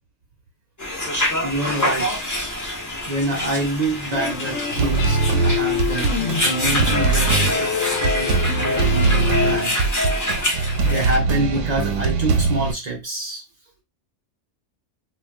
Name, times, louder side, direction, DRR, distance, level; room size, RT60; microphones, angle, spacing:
sound 1, 0.8-11.2, left 1 dB, 20° left, 0.6 m, -25 dB
voice 1, 1.4-2.2 3.1-7.7 8.0-9.8 10.8-13.4, right 2 dB, 45° right, 0.6 m, -26 dB
sound 2, 4.1-9.6, left 8 dB, 80° left, 0.9 m, -27 dB
sound 3, 4.8-12.7, right 4 dB, 80° right, 1.0 m, -21 dB
2.3 x 2.3 x 3.3 m
omnidirectional pair, 1.3 m